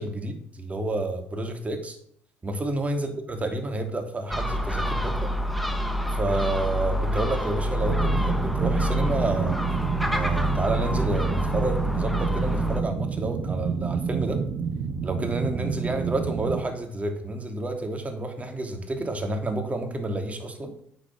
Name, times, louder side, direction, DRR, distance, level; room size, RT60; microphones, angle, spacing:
voice 1, 0.0-2.0 2.4-5.3 6.1-9.6 10.1-14.4 15.0-20.7, right 2 dB, 25° right, 4 dB, 2.9 m, -29 dB
Gull seagull, 4.3-12.8, equal, ahead, 1.4 m, -27 dB
sound 1, 7.8-16.6, right 6 dB, 50° right, 1.5 m, -29 dB
10.5 x 6.5 x 6.6 m, 0.65 s
hypercardioid pair, 55°, 5 cm